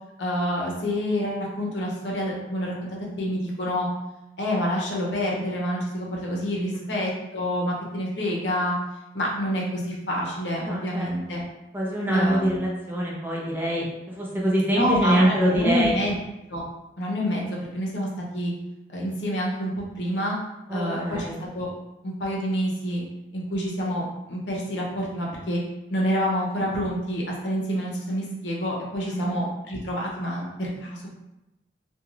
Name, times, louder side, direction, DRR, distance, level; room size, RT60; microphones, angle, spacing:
voice 1, 0.2-2.9 3.2-3.9 4.4-8.8 9.1-11.4 12.1-12.6 14.7-16.2 16.5-16.6 17.0-18.1 18.3-18.5 18.9-20.4 20.7-21.7 22.0-23.0 23.3-25.6 25.9-31.1, equal, 80° left, -2 dB, 0.7 m, -27 dB
voice 2, 10.6-11.1 11.7-16.0 20.7-21.4 29.0-29.4, equal, 10° right, -4 dB, 0.5 m, -25 dB
2.4 x 2.3 x 3.1 m, 0.94 s
head